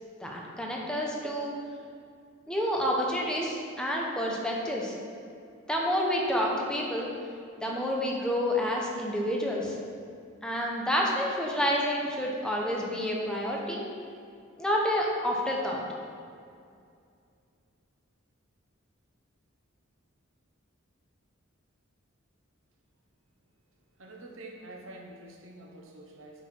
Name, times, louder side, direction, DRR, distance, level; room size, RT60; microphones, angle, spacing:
voice 1, 0.2-1.6 2.5-4.9 5.7-7.1 7.6-9.8 10.4-13.9 14.6-15.8, equal, 5° left, -2 dB, 0.9 m, -29 dB
voice 2, 24.0-26.4, right 1 dB, 70° right, 0 dB, 1.1 m, -47 dB
8.5 x 4.5 x 4.5 m, 2.4 s
head